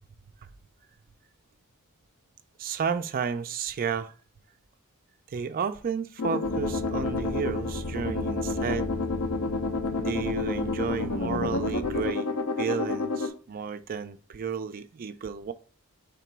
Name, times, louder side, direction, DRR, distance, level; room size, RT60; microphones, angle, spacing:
voice 1, 2.6-4.1 5.3-8.9 10.0-12.3 12.6-15.5, right 6 dB, 40° right, 0.3 m, -32 dB
sound 1, 6.2-13.3, left 3 dB, 80° left, 0.6 m, -30 dB
sound 2, 6.4-12.1, equal, 45° left, 2.4 m, -38 dB
3.6 x 2.9 x 4.5 m
head